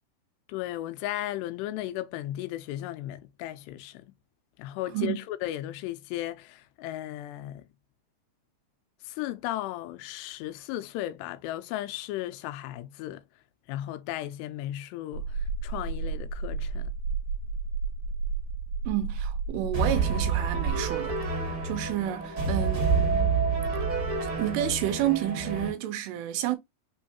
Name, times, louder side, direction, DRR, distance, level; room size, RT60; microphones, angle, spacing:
voice 1, 0.5-4.1 4.6-7.7 9.0-13.2 13.7-16.9, left 14 dB, 85° left, 2.7 m, -35 dB
sound 1, 15.1-20.7, right 4 dB, 65° right, 1.7 m, -32 dB
voice 2, 18.9-21.2 21.6-23.4 24.4-26.6, right 12 dB, 80° right, 2.8 m, -30 dB
sound 2, 19.7-25.7, right 4 dB, 40° right, 2.3 m, -28 dB
6.3 x 3.1 x 2.7 m
omnidirectional pair, 4.9 m